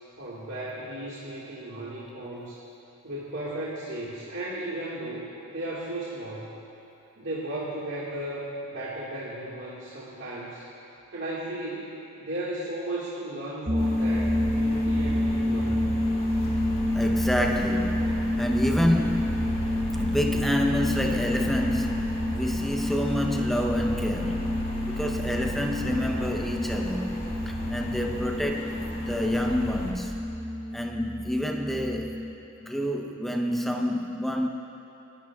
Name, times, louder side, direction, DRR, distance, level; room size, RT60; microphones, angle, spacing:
voice 1, 0.2-2.6 3.0-5.2 5.5-6.5 7.2-10.7 11.1-15.9, right 1 dB, 60° right, -7 dB, 1.9 m, -35 dB
sound 1, 13.7-32.3, left 1 dB, 30° right, 0.8 m, -29 dB
sound 2, 13.8-29.9, left 1 dB, 45° left, 2.5 m, -36 dB
voice 2, 16.9-30.2 30.7-32.2 32.6-34.5, left 1 dB, ahead, 1 dB, 0.8 m, -28 dB
30.0 x 12.5 x 2.4 m, 2.8 s
head